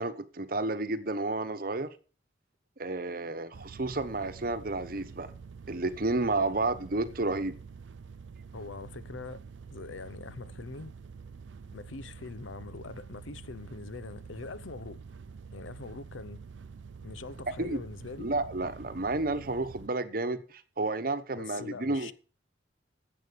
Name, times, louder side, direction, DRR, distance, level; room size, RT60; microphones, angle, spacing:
voice 1, 0.0-1.9 2.8-5.3 5.7-7.6 17.6-17.8 18.2-22.1, right 2 dB, 50° right, 1.0 m, -31 dB
sound 1, 3.5-19.9, right 5 dB, 75° right, 0.5 m, -47 dB
voice 2, 8.5-9.4 9.7-10.9 11.7-15.0 15.5-16.4 17.0-18.3 21.3-22.1, left 3 dB, 90° left, 0.8 m, -43 dB
11.0 x 7.8 x 6.7 m
head